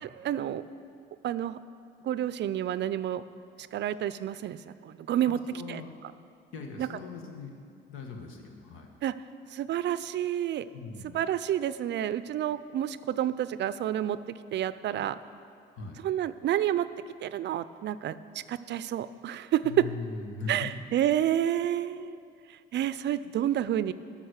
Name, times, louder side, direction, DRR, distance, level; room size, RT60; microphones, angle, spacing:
voice 1, 0.1-0.6 1.2-1.6 2.0-3.2 3.6-5.4 5.7-5.8 6.8-6.9 9.0-9.1 9.5-10.7 11.1-14.2 14.5-15.2 16.0-16.9 17.2-18.2 18.5-19.9 20.5-22.2 22.7-23.9, right 11 dB, 60° right, 15 dB, 0.4 m, -29 dB
voice 2, 5.3-6.2 6.5-8.9 10.7-11.2 15.7-16.0 19.6-20.7, left 4 dB, 85° left, 3 dB, 1.4 m, -40 dB
13.0 x 5.9 x 6.5 m, 2.4 s
cardioid pair, 90°, 20 cm